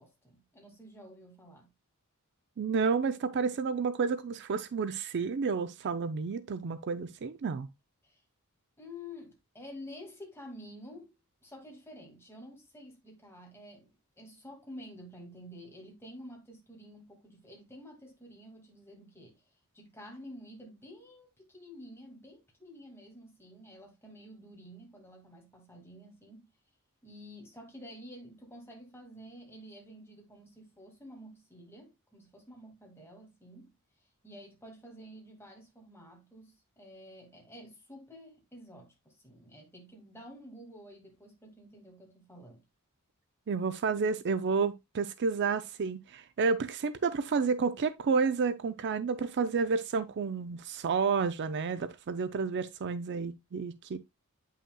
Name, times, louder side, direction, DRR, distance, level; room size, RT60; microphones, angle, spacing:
voice 1, 0.0-1.7 8.0-8.2 8.8-11.1 11.4-19.4 19.7-26.5 27.0-33.7 34.2-42.6, equal, 10° left, 2.0 m, -50 dB
voice 2, 2.6-7.7 43.5-54.0, right 5 dB, 55° right, 0.4 m, -30 dB
8.6 x 5.6 x 2.2 m
head